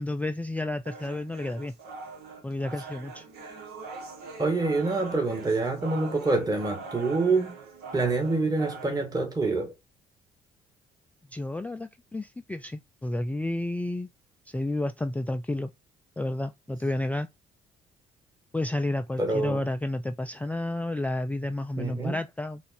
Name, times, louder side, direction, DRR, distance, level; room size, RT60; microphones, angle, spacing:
voice 1, 0.0-1.7 2.4-3.3 11.3-14.1 14.5-15.7 16.2-17.3 18.5-22.6, left 1 dB, 10° left, 0.4 m, -31 dB
sound 1, 0.9-8.9, right 4 dB, 70° right, 1.3 m, -42 dB
voice 2, 4.4-7.5 7.9-9.7 19.2-19.6 21.8-22.2, right 3 dB, 20° right, 1.6 m, -26 dB
3.9 x 2.4 x 4.3 m
supercardioid pair, 60°, 17 cm